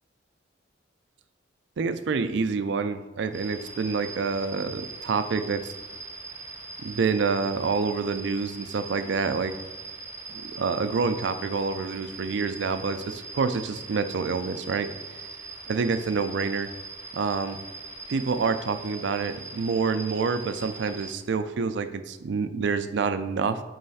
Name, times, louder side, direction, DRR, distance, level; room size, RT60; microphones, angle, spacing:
voice 1, 1.8-5.7 6.8-9.5 10.3-14.9 15.7-16.7 17.1-17.6 18.1-23.6, right 5 dB, 65° right, 10 dB, 0.4 m, -27 dB
sound 1, 3.3-21.1, right 3 dB, 15° right, 0.8 m, -41 dB
5.5 x 3.2 x 5.5 m, 1.2 s
head